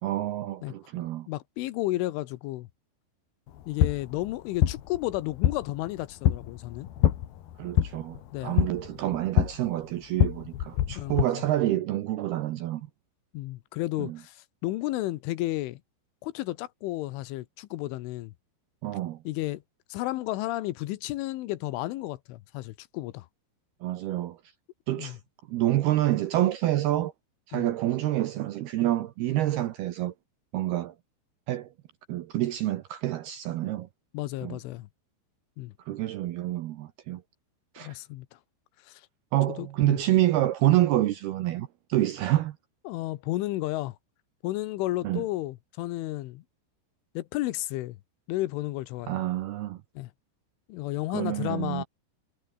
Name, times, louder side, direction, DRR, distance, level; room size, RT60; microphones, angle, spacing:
voice 1, 0.0-1.3 7.6-12.8 14.0-14.2 18.8-19.2 23.8-24.4 24.9-25.2 25.5-27.1 27.5-30.1 30.5-30.9 31.5-31.7 32.1-33.9 34.4-34.6 35.9-37.2 37.8-38.0 39.3-42.6 45.0-45.2 49.1-49.8 51.1-51.8, right 14 dB, 75° right, 2.4 m, -27 dB
voice 2, 1.3-2.7 3.7-6.9 8.3-8.7 11.0-11.4 13.3-15.8 16.2-18.3 19.2-19.6 19.9-23.3 25.0-25.2 27.5-27.7 34.1-34.9 35.6-35.7 37.8-38.4 38.8-39.0 39.5-40.0 42.9-44.0 44.4-46.4 47.1-48.0 48.3-49.1 50.0-50.1 50.7-51.8, left 17 dB, 80° left, 3.4 m, -32 dB
sound 1, 3.5-11.2, left 11 dB, 60° left, 3.1 m, -27 dB
omnidirectional pair, 5.8 m